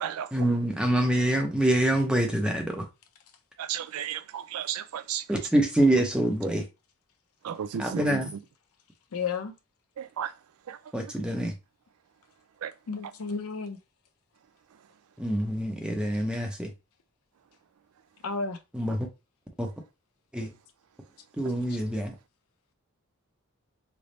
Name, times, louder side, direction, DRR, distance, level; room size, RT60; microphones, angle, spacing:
voice 1, 0.3-2.9 5.3-6.6 7.8-8.3 10.9-11.5 15.2-16.7 18.7-19.1 19.6-19.7 20.3-20.5 21.4-22.1, right 1 dB, 5° right, 0.6 m, -25 dB
voice 2, 3.6-5.2 7.4-8.2 10.0-10.3 10.7-10.8 12.6-12.7, right 9 dB, 85° right, 0.4 m, -33 dB
voice 3, 9.1-9.5 12.9-13.8 18.2-18.6 21.7-21.8, left 5 dB, 85° left, 0.6 m, -32 dB
3.3 x 2.0 x 3.9 m
head